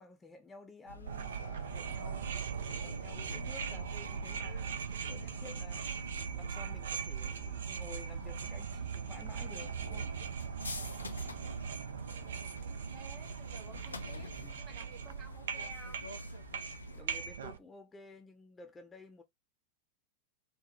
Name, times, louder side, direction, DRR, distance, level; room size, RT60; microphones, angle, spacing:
voice 1, 0.0-2.3 2.7-5.9 6.3-10.2 14.4-14.6 16.9-19.2, left 3 dB, 15° left, 0.7 m, -53 dB
sound 1, 0.9-17.0, left 3 dB, 80° left, 0.4 m, -47 dB
sound 2, 1.1-17.6, right 8 dB, 65° right, 0.4 m, -40 dB
voice 2, 12.1-16.1, right 5 dB, 35° right, 1.5 m, -54 dB
4.4 x 2.0 x 3.1 m
figure-of-eight pair, 90°, 0 cm